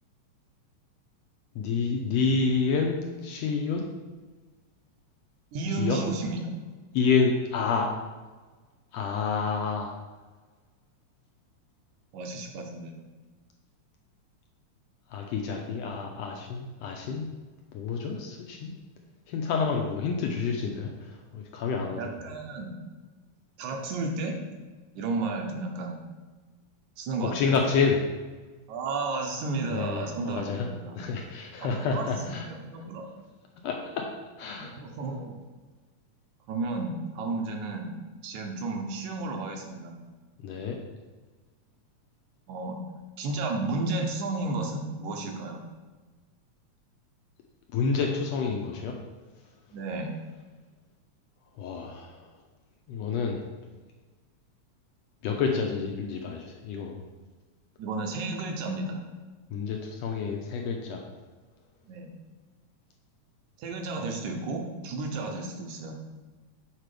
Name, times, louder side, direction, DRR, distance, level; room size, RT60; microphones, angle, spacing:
voice 1, 1.5-3.8 5.8-6.0 6.9-7.9 8.9-9.9 15.1-17.3 17.7-18.7 19.3-22.1 27.3-28.0 29.7-30.7 30.9-32.5 33.6-34.0 34.4-34.7 40.4-40.8 47.7-49.0 51.6-52.2 52.9-53.4 55.2-57.0 59.5-61.0, left 5 dB, 75° left, 1 dB, 1.7 m, -28 dB
voice 2, 5.5-6.4 12.1-12.9 22.0-22.7 23.6-24.4 25.0-26.0 27.0-27.6 28.7-31.0 31.6-33.1 34.6-35.4 36.5-37.9 38.2-40.0 42.5-42.8 43.2-45.6 49.7-50.1 57.8-59.0 61.9-62.1 63.6-66.0, right 3 dB, 80° right, 2 dB, 2.3 m, -32 dB
6.6 x 4.5 x 5.0 m, 1.3 s
omnidirectional pair, 3.3 m